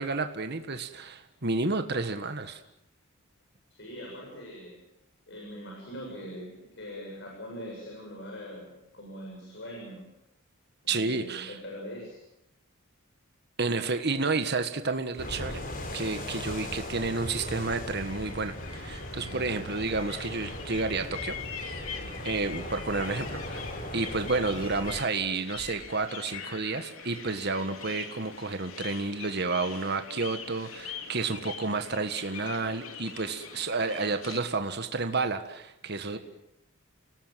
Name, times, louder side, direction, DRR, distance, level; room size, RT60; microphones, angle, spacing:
voice 1, 0.0-2.6 10.9-11.5 13.6-15.6 15.9-21.4 22.2-36.2, right 3 dB, 55° right, 8 dB, 1.6 m, -31 dB
voice 2, 3.7-4.8 5.3-10.1 10.8-12.2 19.1-19.5 21.8-22.1 36.1-36.2, equal, 60° left, -1 dB, 7.5 m, -42 dB
sound 1, 15.2-25.0, left 1 dB, 45° left, 4.4 m, -38 dB
sound 2, 18.0-34.4, left 6 dB, 85° left, 3.1 m, -43 dB
29.5 x 19.0 x 7.6 m, 0.87 s
head